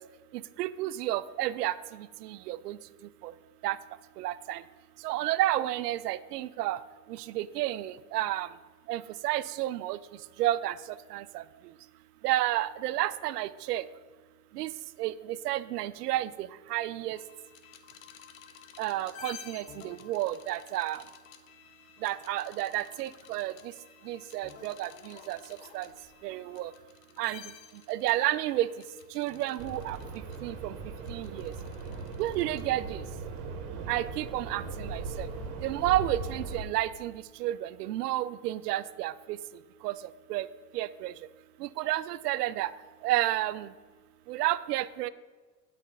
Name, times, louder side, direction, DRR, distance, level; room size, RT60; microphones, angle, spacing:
voice 1, 0.6-2.8 3.2-3.3 3.6-3.8 4.2-4.6 5.0-6.8 7.2-8.5 8.9-10.0 10.4-10.8 11.1-11.4 12.2-13.8 14.5-14.7 15.0-17.2 18.8-21.0 22.0-23.5 24.1-25.4 25.7-25.9 26.2-26.7 27.2-27.4 27.9-28.7 29.1-30.0 30.4-30.7 31.1-31.5 32.2-33.0 33.9-35.3 35.6-39.4 39.8-40.0 40.3-40.5 40.7-41.1 41.6-42.7 43.0-43.7 44.3-45.1, right 14 dB, 75° right, 16 dB, 0.5 m, -31 dB
sound 1, 17.1-33.1, left 9 dB, 55° left, 0.8 m, -52 dB
sound 2, 29.6-36.6, right 3 dB, 50° right, 1.2 m, -39 dB
9.3 x 4.2 x 5.1 m, 1.4 s
hypercardioid pair, 100°, 48 cm